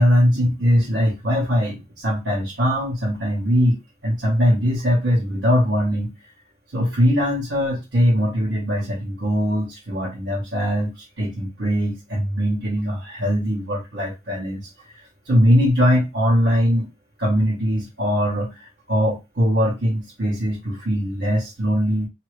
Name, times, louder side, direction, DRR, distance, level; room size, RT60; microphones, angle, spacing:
voice 1, 0.0-6.1 6.7-14.7 15.0-16.9 17.2-22.1, equal, 90° right, -4 dB, 1.2 m, -21 dB
2.9 x 2.8 x 3.1 m, 0.23 s
head